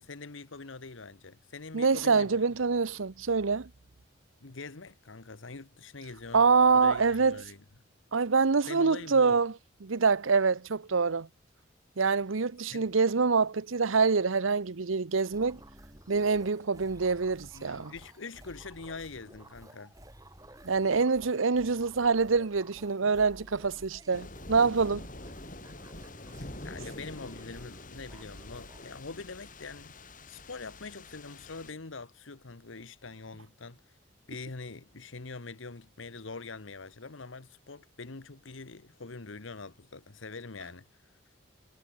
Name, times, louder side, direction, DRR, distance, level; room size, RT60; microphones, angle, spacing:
voice 1, 0.0-2.5 4.4-7.6 8.6-9.4 12.7-12.9 17.5-19.9 23.0-23.1 25.7-25.8 26.6-30.0 30.3-33.8 34.3-40.9, left 3 dB, 80° left, 1.2 m, -44 dB
voice 2, 1.7-3.7 6.3-7.4 8.1-9.5 9.8-11.3 12.0-15.6 16.1-17.9 20.6-25.1, right 4 dB, 90° right, 0.8 m, -25 dB
sound 1, 15.3-28.9, right 1 dB, 20° right, 5.8 m, -53 dB
sound 2, 24.1-31.7, left 2 dB, 40° left, 4.3 m, -46 dB
head